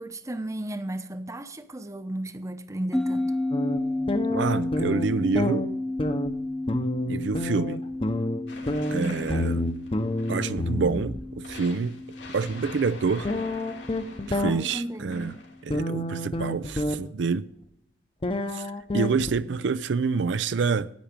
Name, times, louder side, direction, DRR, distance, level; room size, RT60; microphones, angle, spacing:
voice 1, 0.0-3.3 8.9-9.2 14.4-15.3, right 1 dB, 20° right, 0.8 m, -34 dB
sound 1, 2.9-15.7, left 2 dB, 5° left, 0.3 m, -33 dB
sound 2, 3.5-5.1 5.3-11.2 13.2-14.5 15.7-17.0 18.2-19.6, left 1 dB, 30° left, 0.8 m, -29 dB
voice 2, 4.3-5.7 7.1-7.8 8.9-9.6 10.3-12.0 12.3-13.3 14.3-15.3 15.6-17.5 18.5-18.7 18.9-20.9, right 5 dB, 80° right, 0.5 m, -27 dB
sound 3, 8.5-10.7 11.4-14.6 15.1-15.7, left 3 dB, 80° left, 2.8 m, -44 dB
10.5 x 8.6 x 5.2 m
head